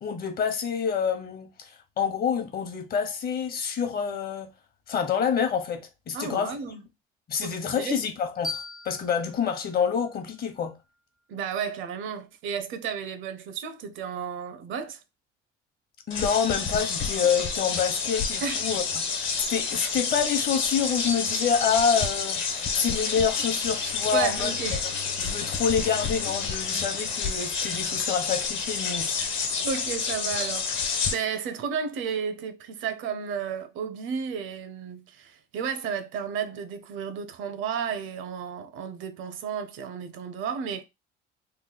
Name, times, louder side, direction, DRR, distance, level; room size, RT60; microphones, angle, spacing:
voice 1, 0.0-4.5 4.9-6.5 7.3-10.7 16.1-18.8 19.1-24.5 25.2-29.2, left 7 dB, 50° left, 0.8 m, -27 dB
voice 2, 6.1-6.8 7.4-8.0 11.3-15.0 18.4-18.7 24.1-24.8 29.2-29.3 29.6-40.8, right 7 dB, 70° right, 0.6 m, -33 dB
sound 1, 8.4-11.2, left 3 dB, ahead, 0.3 m, -40 dB
sound 2, 16.1-31.1, left 5 dB, 65° left, 1.1 m, -29 dB
Bowed string instrument, 23.6-28.0, left 15 dB, 85° left, 0.5 m, -46 dB
3.2 x 2.2 x 3.8 m
cardioid pair, 120°, 21 cm